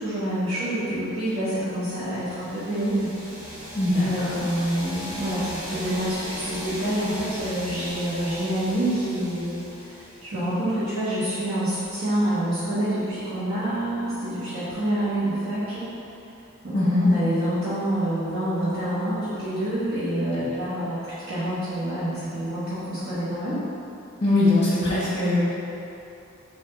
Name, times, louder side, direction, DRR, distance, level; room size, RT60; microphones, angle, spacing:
voice 1, 0.0-3.1 3.9-9.5 9.8-15.9 16.6-23.6, right 1 dB, 65° right, -15 dB, 1.2 m, -27 dB
sound 1, 2.0-10.7, equal, 20° right, 1.1 m, -38 dB
voice 2, 3.7-4.4 16.7-17.1 24.2-25.4, left 2 dB, 25° left, -8 dB, 0.8 m, -21 dB
4.4 x 2.6 x 3.8 m, 2.9 s
head